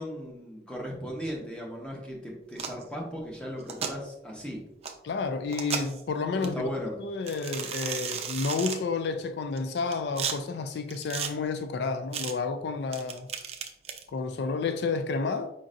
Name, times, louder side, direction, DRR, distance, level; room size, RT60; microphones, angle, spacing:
voice 1, 0.0-4.6 6.5-6.9, equal, 5° left, 0.9 m, -37 dB
sound 1, 2.5-2.8 3.6-3.9 4.8-4.9 5.5-6.0 6.4-6.5 7.3-8.8 9.6-10.3 10.9-11.3 12.1-12.3 12.9-14.0, right 6 dB, 35° right, 0.4 m, -34 dB
voice 2, 5.0-6.7 7.0-13.3 14.1-15.5, left 4 dB, 70° left, 0.3 m, -30 dB
5.0 x 3.9 x 2.5 m
head